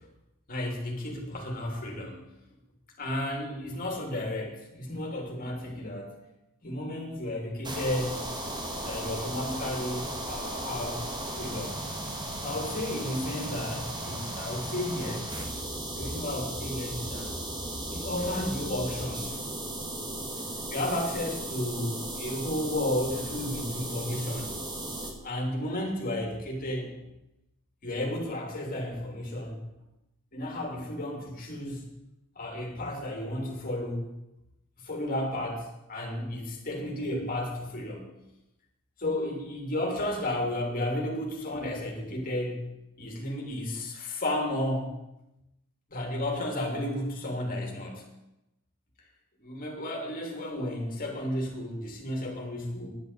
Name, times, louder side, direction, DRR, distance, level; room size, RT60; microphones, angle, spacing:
voice 1, 0.5-2.2 3.0-6.1 6.6-8.3 8.8-11.8 12.4-15.2 15.9-17.3 17.9-19.4 20.7-24.5 25.2-27.0 27.8-29.6 30.3-31.8 32.3-34.1 34.8-38.0 39.0-42.6 43.0-45.0 45.9-48.0 49.4-52.9, left 1 dB, 40° left, 0 dB, 3.1 m, -33 dB
sound 1, 7.6-25.1, right 1 dB, 20° right, 1.9 m, -36 dB
10.5 x 8.4 x 8.4 m, 0.92 s
head